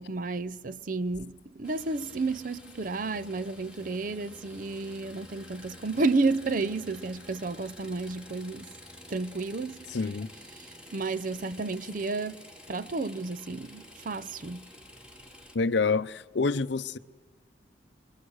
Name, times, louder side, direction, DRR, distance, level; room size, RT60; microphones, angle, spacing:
voice 1, 0.0-8.7 9.1-10.0 10.6-14.7, right 3 dB, 45° right, 0.6 m, -32 dB
sound 1, 1.6-15.6, left 1 dB, 5° right, 2.9 m, -50 dB
voice 2, 9.9-10.3 15.5-17.0, left 4 dB, 70° left, 0.6 m, -27 dB
26.0 x 23.5 x 6.4 m
head